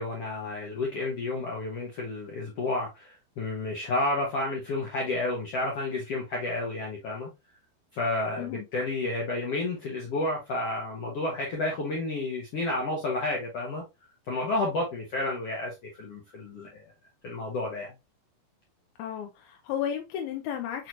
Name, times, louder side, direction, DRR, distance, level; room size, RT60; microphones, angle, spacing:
voice 1, 0.0-7.3 7.9-13.8 14.3-16.8 17.2-17.9, left 2 dB, 70° left, 1.4 m, -31 dB
voice 2, 19.0-20.9, left 9 dB, 85° left, 2.6 m, -33 dB
6.3 x 3.0 x 2.4 m
omnidirectional pair, 4.4 m